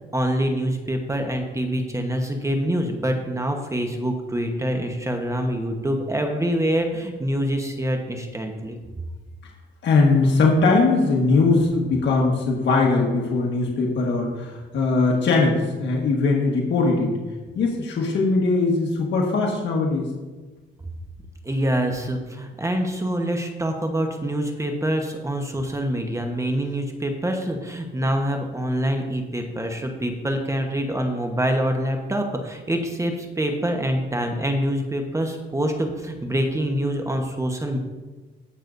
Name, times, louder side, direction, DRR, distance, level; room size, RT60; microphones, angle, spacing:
voice 1, 0.1-8.8 21.4-37.8, equal, 15° right, 3 dB, 1.1 m, -25 dB
voice 2, 9.8-17.1 17.5-20.1, left 3 dB, 65° left, -1 dB, 1.6 m, -20 dB
18.0 x 6.2 x 2.7 m, 1.3 s
cardioid pair, 90°, 20 cm